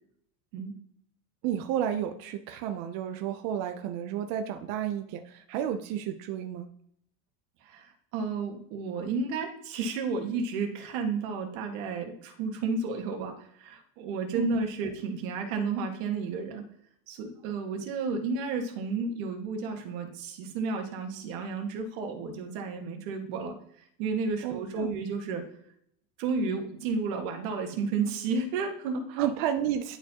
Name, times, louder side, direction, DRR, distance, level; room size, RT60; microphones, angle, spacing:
voice 1, 1.4-6.7 14.3-14.6 24.4-25.0 29.2-30.0, right 10 dB, 40° right, 7 dB, 0.4 m, -31 dB
voice 2, 7.6-16.6 17.1-25.5 26.2-29.2, right 4 dB, 65° right, 3 dB, 1.6 m, -32 dB
11.0 x 4.5 x 2.8 m, 0.70 s
cardioid pair, 165°, 43 cm